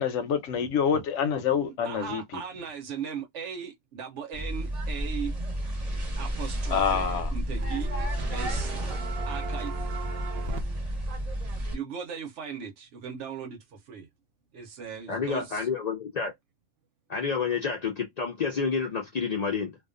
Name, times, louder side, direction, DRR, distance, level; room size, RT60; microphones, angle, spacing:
voice 1, 0.0-2.4 6.7-7.3, left 7 dB, 90° left, 0.9 m, -27 dB
voice 2, 1.8-5.3 6.2-7.9 8.3-10.8 11.7-14.1 14.5-15.7, right 7 dB, 85° right, 1.1 m, -38 dB
sound 1, 4.3-11.7, right 1 dB, 40° right, 0.9 m, -31 dB
sound 2, 6.4-7.2 7.5-10.6, right 3 dB, 65° right, 0.8 m, -39 dB
voice 3, 15.1-16.3 17.1-19.8, left 5 dB, 60° left, 0.4 m, -29 dB
2.5 x 2.3 x 2.4 m
omnidirectional pair, 1.2 m